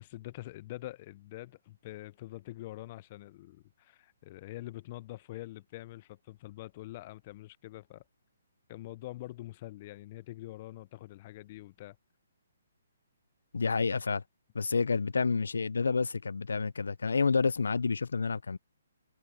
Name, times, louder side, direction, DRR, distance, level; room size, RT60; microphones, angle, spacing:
voice 1, 0.0-8.0 8.7-12.0, left 16 dB, 35° left, 0.6 m, -45 dB
voice 2, 13.5-14.2 14.5-18.6, left 4 dB, 85° left, 0.5 m, -29 dB
hypercardioid pair, 150°, 0 cm